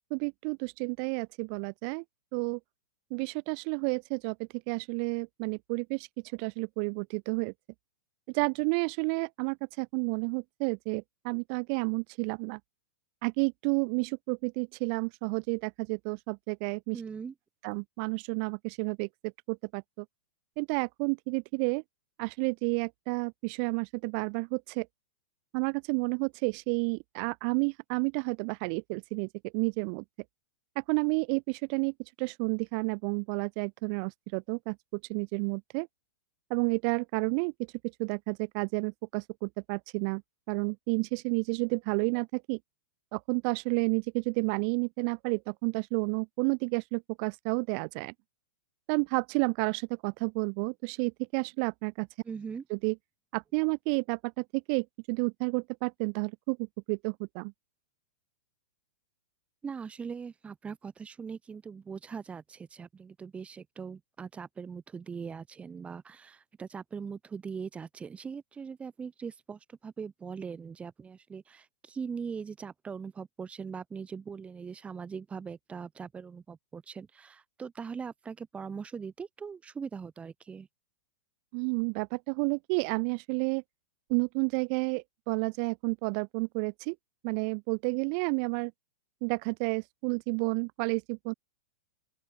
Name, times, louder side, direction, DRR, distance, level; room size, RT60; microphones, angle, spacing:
voice 1, 0.1-2.0 2.3-2.6 3.1-7.5 8.3-12.6 13.2-17.0 17.6-20.1 20.6-21.8 22.2-24.9 25.5-30.0 30.8-35.9 36.5-37.5 38.0-40.2 40.5-42.6 43.1-48.1 48.9-52.1 52.7-53.0 53.3-57.5 81.5-83.6 84.1-87.0 87.2-88.7 89.2-91.3, right 40 dB or more, 45° right, 2.0 m, -31 dB
voice 2, 16.9-17.3 52.2-52.6 59.6-80.7, right 6 dB, 15° right, 2.6 m, -41 dB
open air
hypercardioid pair, 130°, 8 cm